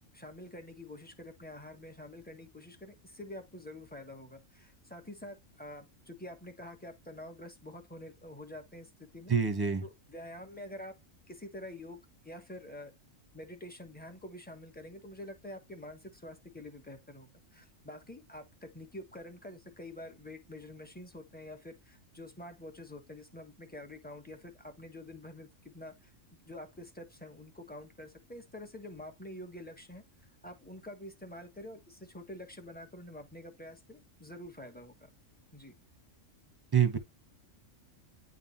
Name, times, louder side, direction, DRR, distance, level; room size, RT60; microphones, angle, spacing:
voice 1, 0.1-9.3 9.8-11.0 11.3-30.0 30.4-35.1 35.5-35.7, left 1 dB, 10° left, 1.1 m, -47 dB
voice 2, 9.3-9.8 36.7-37.0, right 7 dB, 20° right, 1.0 m, -26 dB
9.9 x 3.7 x 2.8 m
omnidirectional pair, 1.3 m